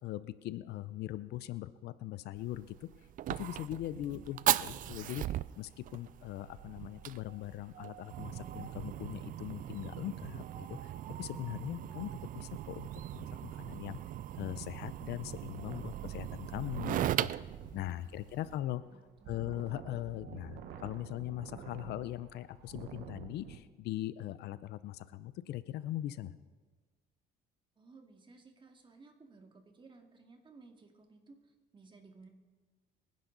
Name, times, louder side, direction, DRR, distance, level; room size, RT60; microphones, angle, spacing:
voice 1, 0.0-2.9 3.4-10.9 11.2-14.0 14.3-18.8 19.3-26.4, left 14 dB, 75° left, 15 dB, 0.7 m, -41 dB
Fire, 2.4-18.6, right 13 dB, 55° right, 0.4 m, -38 dB
Wind, 3.9-9.3 10.3-23.6, right 8 dB, 80° right, 1.2 m, -51 dB
voice 2, 18.2-18.6 18.9-19.6 27.8-32.3, right 3 dB, 30° right, 4 dB, 2.2 m, -58 dB
25.0 x 10.5 x 4.0 m, 1.4 s
cardioid pair, 110°, 17 cm